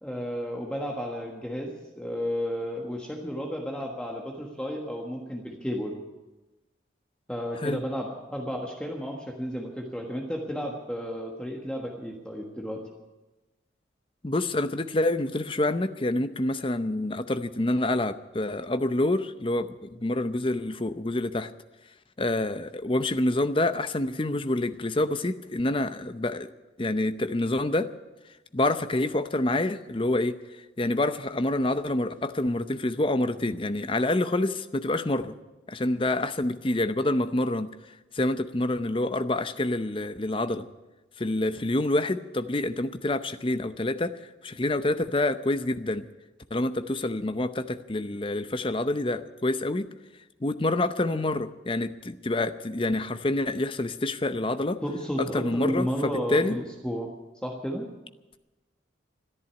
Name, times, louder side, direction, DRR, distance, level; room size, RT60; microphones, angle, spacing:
voice 1, 0.0-6.0 7.3-12.8 54.8-57.1 57.4-57.9, equal, 5° left, 0 dB, 1.4 m, -32 dB
voice 2, 14.2-21.5 22.2-26.5 26.8-27.9 28.5-30.4 30.8-35.3 35.7-37.7 38.1-40.7 41.2-46.1 46.5-49.9 50.4-54.8 55.2-56.6, left 2 dB, 30° left, 10 dB, 0.7 m, -27 dB
13.5 x 11.0 x 9.7 m, 1.1 s
head